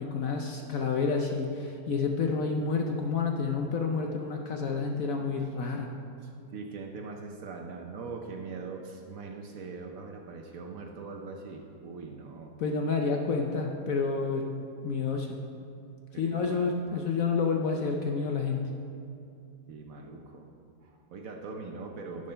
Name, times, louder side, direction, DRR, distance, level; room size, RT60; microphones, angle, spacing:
voice 1, 0.0-5.9 12.6-14.5 14.8-15.4 16.2-18.7, left 4 dB, 65° left, 2 dB, 0.9 m, -29 dB
voice 2, 6.5-12.5 16.1-17.0 19.7-20.5 20.8-22.3, right 4 dB, 60° right, 2 dB, 1.0 m, -41 dB
10.5 x 6.5 x 5.6 m, 2.5 s
omnidirectional pair, 1.9 m